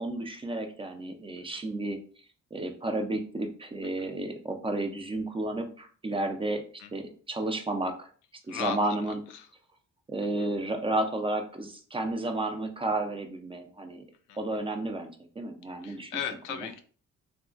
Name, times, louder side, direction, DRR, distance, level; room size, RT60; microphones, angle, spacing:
voice 1, 0.0-2.0 2.5-6.6 6.9-8.1 8.5-9.2 10.1-14.0 14.4-16.1, right 2 dB, 20° right, 5 dB, 0.4 m, -32 dB
voice 2, 8.5-9.0 9.3-9.5 10.4-10.5 14.3-14.4 15.8-16.8, left 8 dB, 90° left, 7 dB, 0.5 m, -36 dB
2.8 x 2.5 x 2.4 m, 0.43 s
cardioid pair, 90°, 30 cm